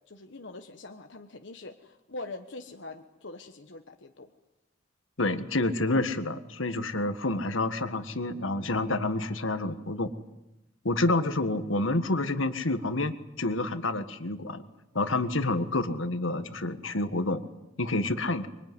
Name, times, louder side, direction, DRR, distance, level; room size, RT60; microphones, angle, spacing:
voice 1, 0.1-4.3, left 2 dB, 65° left, 5 dB, 1.3 m, -43 dB
voice 2, 5.2-10.1 10.9-14.6 15.0-17.4 17.8-18.5, left 2 dB, 80° left, 10 dB, 1.7 m, -28 dB
25.5 x 23.5 x 9.6 m, 0.93 s
head